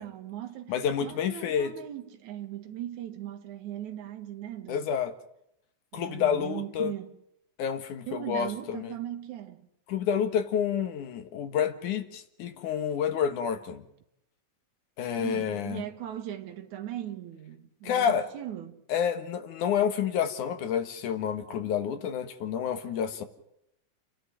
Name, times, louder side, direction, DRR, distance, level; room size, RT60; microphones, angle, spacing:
voice 1, 0.0-4.9 5.9-7.1 8.1-9.7 15.2-18.8, right 12 dB, 80° right, 2.9 m, -39 dB
voice 2, 0.7-1.7 4.7-5.1 5.9-6.9 7.6-8.9 9.9-13.8 15.0-15.8 17.8-18.3 18.9-23.2, left 8 dB, 90° left, 3.0 m, -29 dB
30.0 x 11.0 x 9.0 m
omnidirectional pair, 3.4 m